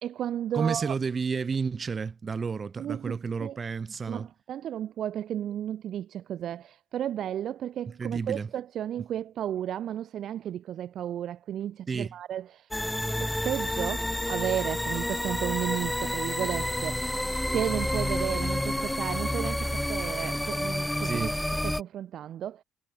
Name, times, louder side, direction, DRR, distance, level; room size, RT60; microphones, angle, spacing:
voice 1, 0.0-0.9 2.8-3.6 4.1-12.7 13.2-17.1 17.5-21.3 21.6-22.6, right 10 dB, 70° right, 0.6 m, -33 dB
voice 2, 0.5-4.3 8.0-8.5 11.9-12.1 21.0-21.3, right 5 dB, 40° right, 1.6 m, -31 dB
sound 1, 12.7-21.8, left 1 dB, 5° left, 1.2 m, -29 dB
cardioid pair, 90°, 0 cm